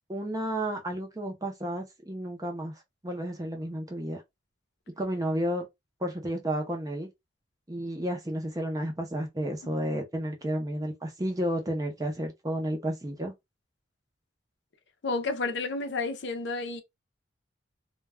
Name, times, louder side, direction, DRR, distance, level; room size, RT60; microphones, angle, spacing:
voice 1, 0.1-4.2 5.0-5.7 6.0-7.1 7.7-13.3, right 1 dB, 20° right, 0.5 m, -32 dB
voice 2, 15.0-16.8, left 3 dB, 60° left, 0.5 m, -31 dB
2.2 x 2.1 x 3.3 m
head